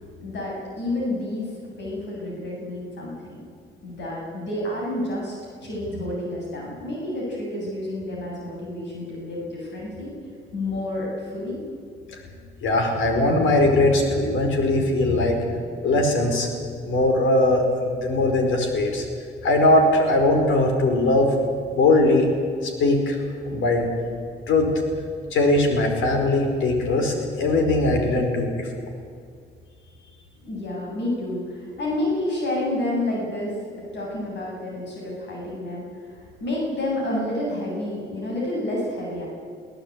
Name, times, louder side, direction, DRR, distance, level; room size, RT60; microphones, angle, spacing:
voice 1, 0.2-3.1 3.8-5.4 5.6-10.1 10.5-11.6 30.4-39.3, left 1 dB, 60° left, -3 dB, 7.9 m, -29 dB
voice 2, 12.6-15.4 15.8-16.5 16.8-19.0 19.4-21.3 21.7-22.3 22.6-23.2 23.4-23.9 24.5-24.8 25.3-28.7, left 2 dB, 80° left, 4 dB, 4.9 m, -20 dB
22.5 x 17.0 x 8.9 m, 2.3 s
cardioid pair, 90°, 20 cm